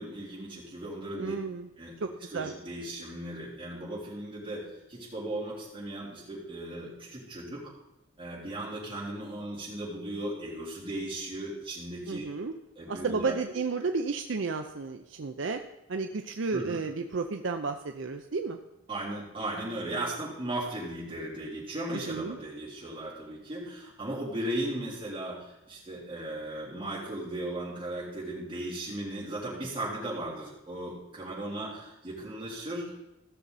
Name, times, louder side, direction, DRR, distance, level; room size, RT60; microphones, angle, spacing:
voice 1, 0.0-1.3 1.8-7.6 8.2-12.3 12.8-13.6 16.5-16.8 18.9-32.9, right 1 dB, 25° right, -7 dB, 3.6 m, -37 dB
voice 2, 1.2-1.7 2.0-2.5 12.1-12.5 12.9-15.6 15.9-18.6 21.9-22.4, right 4 dB, 60° right, 6 dB, 0.5 m, -32 dB
15.5 x 6.6 x 4.1 m, 0.92 s
head